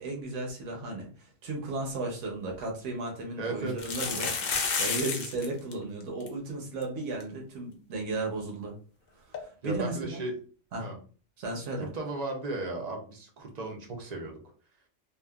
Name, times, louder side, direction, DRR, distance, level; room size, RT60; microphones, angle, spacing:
voice 1, 0.0-8.7 9.3-10.2 10.7-10.9 11.4-11.9, right 2 dB, 75° right, 0 dB, 1.1 m, -35 dB
sound 1, 2.1-2.2 2.5-2.6 3.7-5.5 5.7-5.8 6.0-6.3 6.8-6.9 7.2-7.3 9.3-9.4, left 5 dB, 60° left, 0.6 m, -30 dB
voice 2, 3.4-3.7 9.6-10.3 10.8-10.9 11.8-14.3, right 2 dB, 50° right, 2 dB, 0.5 m, -35 dB
2.7 x 2.3 x 2.3 m, 0.40 s
omnidirectional pair, 1.3 m